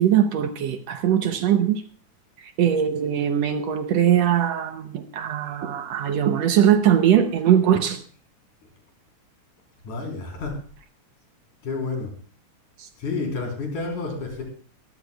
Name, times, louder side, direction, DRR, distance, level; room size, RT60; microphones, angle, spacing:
voice 1, 0.0-1.8 2.4-8.0 12.8-12.9, right 9 dB, 70° right, 1.8 m, -21 dB
voice 2, 9.8-10.6 11.6-12.1 13.0-14.4, left 3 dB, 80° left, 5.5 m, -30 dB
22.5 x 14.5 x 2.3 m
omnidirectional pair, 3.5 m